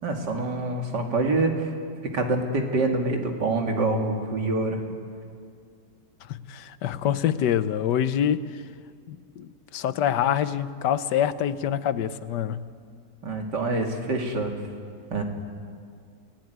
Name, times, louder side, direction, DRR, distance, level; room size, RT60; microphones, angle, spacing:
voice 1, 0.0-1.5 2.1-4.8 13.2-14.5 15.1-15.2, right 2 dB, 85° right, 2 dB, 3.2 m, -26 dB
voice 2, 6.3-8.6 9.1-12.7, left 9 dB, 85° left, 14 dB, 1.5 m, -26 dB
29.5 x 18.0 x 9.5 m, 2.2 s
omnidirectional pair, 1.8 m